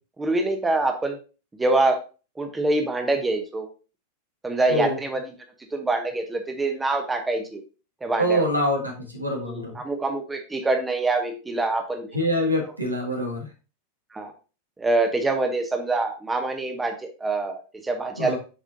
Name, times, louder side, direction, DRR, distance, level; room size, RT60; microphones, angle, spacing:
voice 1, 0.2-1.2 1.6-2.0 2.4-3.7 4.4-5.3 5.7-7.6 8.0-8.5 9.5-12.1 14.1-14.3 14.8-18.4, right 2 dB, 10° right, 5 dB, 0.9 m, -25 dB
voice 2, 8.2-9.7 12.1-13.5 18.2-18.4, equal, 85° right, 1 dB, 1.6 m, -25 dB
7.3 x 4.8 x 2.7 m, 0.34 s
figure-of-eight pair, 90°, 0 cm